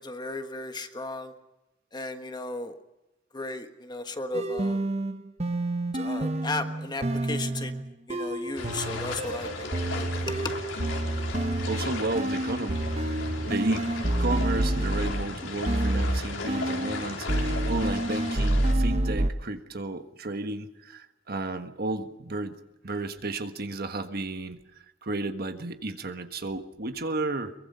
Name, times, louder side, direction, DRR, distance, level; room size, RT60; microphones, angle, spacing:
voice 1, 0.0-1.3 1.9-2.7 3.3-4.8 5.9-7.7 8.1-9.7 9.9-10.5, left 2 dB, 20° left, 7 dB, 1.4 m, -35 dB
sound 1, 4.3-15.3 15.7-17.0 17.3-19.3, right 1 dB, 35° right, 1.1 m, -28 dB
sound 2, 8.5-18.7, left 3 dB, 80° left, 4.2 m, -36 dB
voice 2, 11.7-13.0 13.5-22.6 22.8-27.5, right 2 dB, 55° right, 8 dB, 1.4 m, -33 dB
23.0 x 22.5 x 5.6 m, 1.0 s
head